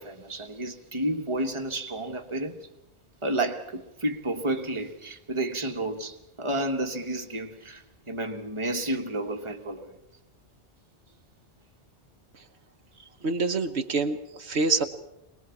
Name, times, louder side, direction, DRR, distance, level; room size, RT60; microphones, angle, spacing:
voice 1, 0.0-2.7 3.2-9.9 13.0-13.1, right 1 dB, 25° right, 1.5 m, -31 dB
voice 2, 13.2-14.8, right 3 dB, 75° right, 1.3 m, -26 dB
23.0 x 20.0 x 7.2 m
omnidirectional pair, 1.2 m